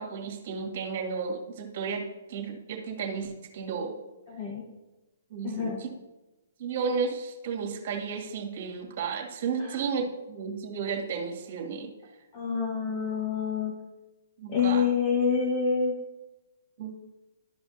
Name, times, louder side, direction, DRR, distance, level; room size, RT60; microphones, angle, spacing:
voice 1, 0.0-3.9 5.3-5.9 6.6-11.9 14.4-14.8 16.8-16.9, right 5 dB, 50° right, 1 dB, 2.0 m, -33 dB
voice 2, 4.3-4.6 5.4-5.8 12.3-13.7 14.5-16.0, left 6 dB, 35° left, -2 dB, 1.3 m, -27 dB
12.5 x 5.1 x 2.7 m, 1.1 s
hypercardioid pair, 150°, 0 cm